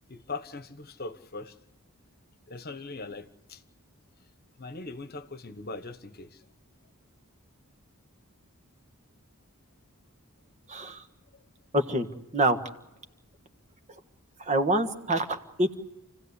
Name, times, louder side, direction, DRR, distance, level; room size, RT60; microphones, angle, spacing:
voice 1, 0.1-1.5 2.5-3.6 4.6-6.4, left 3 dB, 45° left, 11 dB, 1.2 m, -40 dB
voice 2, 10.7-11.0 11.7-12.1 12.3-12.6 14.4-15.7, right 1 dB, 30° right, 8 dB, 1.5 m, -26 dB
28.5 x 16.0 x 8.2 m, 0.98 s
head